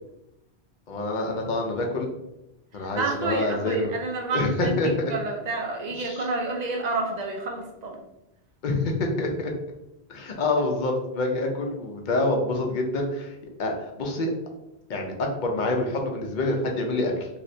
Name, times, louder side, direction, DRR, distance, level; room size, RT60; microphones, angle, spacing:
voice 1, 0.9-2.1 2.7-4.0 4.3-4.9 6.0-6.3 8.6-9.5 10.1-13.3 13.6-14.3 14.9-17.3, left 2 dB, 55° left, 2 dB, 0.7 m, -26 dB
voice 2, 3.0-8.0, right 3 dB, 50° right, 2 dB, 0.6 m, -29 dB
3.2 x 3.1 x 2.6 m, 0.90 s
omnidirectional pair, 1.1 m